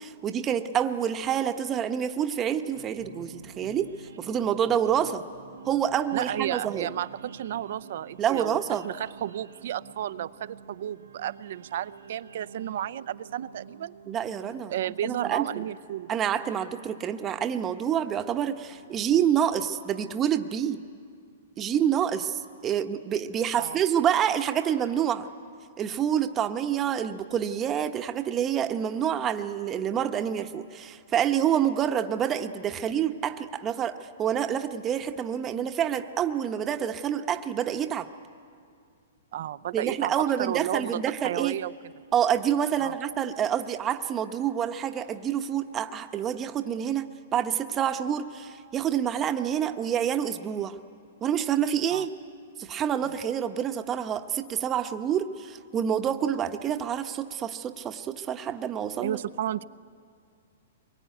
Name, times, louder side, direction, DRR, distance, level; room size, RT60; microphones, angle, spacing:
voice 1, 0.0-5.2 5.7-6.9 8.2-8.8 14.1-14.7 15.0-15.6 16.1-20.8 21.6-25.3 25.8-38.1 39.7-41.6 42.1-50.8 51.2-52.1 52.6-59.2, right 9 dB, 20° right, 8 dB, 1.0 m, -27 dB
sound 1, 2.7-19.9, right 6 dB, 85° right, 1.7 m, -49 dB
voice 2, 6.1-13.9 14.7-16.1 23.5-23.8 39.3-41.7 42.8-42.9 51.9-52.1 53.0-53.1 59.0-59.6, right 11 dB, 60° right, 15 dB, 0.6 m, -32 dB
23.5 x 22.0 x 9.4 m, 2.2 s
hypercardioid pair, 145°, 0 cm